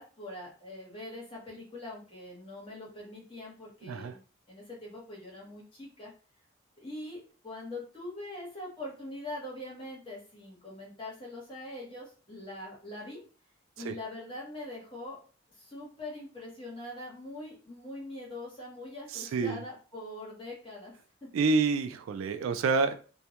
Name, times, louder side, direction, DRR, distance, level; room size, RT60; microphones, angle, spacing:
voice 1, 0.0-4.2 4.5-6.1 6.8-13.2 13.8-15.2 15.6-20.9, left 1 dB, 25° left, -4 dB, 1.0 m, -43 dB
voice 2, 3.8-4.1 13.8-13.9 19.1-19.6 21.3-22.9, right 4 dB, 80° right, 9 dB, 0.3 m, -28 dB
2.2 x 2.2 x 2.8 m, 0.37 s
head